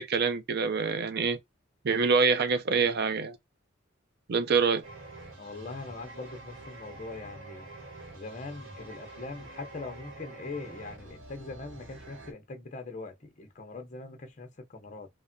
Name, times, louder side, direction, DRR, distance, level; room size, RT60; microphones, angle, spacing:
voice 1, 0.0-1.4 1.8-3.4 4.3-4.8, right 5 dB, 55° right, 0.5 m, -25 dB
sound 1, 4.8-12.3, right 2 dB, 70° right, 1.1 m, -47 dB
voice 2, 5.4-7.7 8.1-15.1, left 3 dB, 40° left, 0.8 m, -42 dB
3.4 x 2.1 x 2.6 m
head